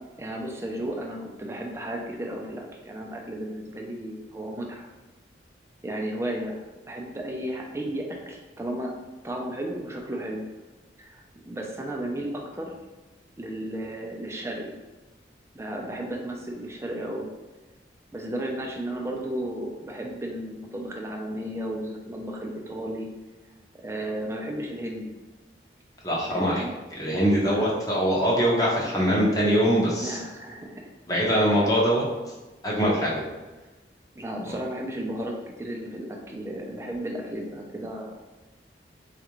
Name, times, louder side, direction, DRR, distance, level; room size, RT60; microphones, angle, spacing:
voice 1, 0.2-4.9 5.8-8.9 9.2-10.4 11.0-12.8 13.4-14.8 15.5-17.3 18.1-23.1 23.7-25.1 26.3-26.8 27.4-27.8 30.0-30.8 31.4-31.7 34.2-38.3, right 1 dB, 15° right, 0 dB, 0.4 m, -34 dB
voice 2, 26.0-26.6 26.9-30.2 31.1-32.0 32.6-33.2 34.5-34.6, equal, 20° left, -4 dB, 0.7 m, -23 dB
4.3 x 2.4 x 3.0 m, 1.2 s
head